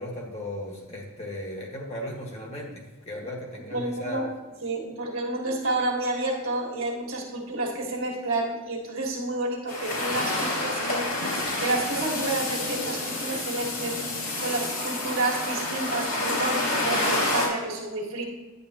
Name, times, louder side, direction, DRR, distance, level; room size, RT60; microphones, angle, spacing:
voice 1, 0.0-4.2, left 1 dB, 30° left, -1 dB, 1.6 m, -36 dB
voice 2, 3.7-4.3 4.6-11.2 11.6-14.0 14.4-18.2, right 2 dB, 65° right, -2 dB, 1.7 m, -30 dB
sound 1, 9.7-17.5, left 2 dB, 60° left, 2.9 m, -28 dB
10.5 x 8.6 x 2.9 m, 1.2 s
head